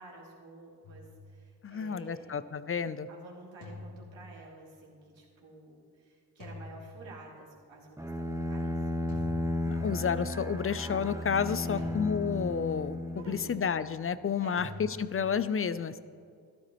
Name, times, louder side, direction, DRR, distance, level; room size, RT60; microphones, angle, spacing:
voice 1, 0.0-2.4 3.1-9.1 11.4-11.9 13.1-13.6 14.4-14.6, right 2 dB, 70° right, -3 dB, 3.0 m, -50 dB
sound 1, 0.8-1.8 3.6-4.7 6.4-7.5 9.1-10.2 11.8-12.9 14.6-15.4, left 2 dB, 80° left, 2.4 m, -47 dB
voice 2, 1.6-3.1 9.7-15.9, left 6 dB, 30° left, 15 dB, 0.5 m, -31 dB
Bowed string instrument, 8.0-13.8, left 1 dB, 5° right, 0.8 m, -34 dB
13.5 x 12.5 x 3.1 m, 2.3 s
supercardioid pair, 45°, 48 cm